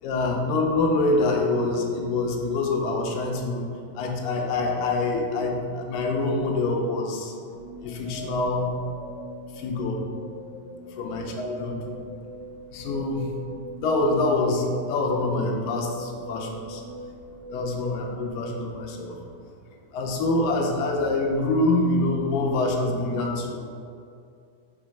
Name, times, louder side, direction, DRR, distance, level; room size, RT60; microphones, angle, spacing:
voice 1, 0.0-3.7 4.0-7.3 7.8-8.7 9.5-10.1 11.0-11.8 12.7-13.3 13.8-16.8 17.5-19.2 19.9-23.6, left 2 dB, 80° left, 1 dB, 2.3 m, -25 dB
sound 1, 7.5-19.6, equal, 45° left, 1.8 m, -42 dB
6.3 x 3.6 x 4.9 m, 2.5 s
omnidirectional pair, 4.1 m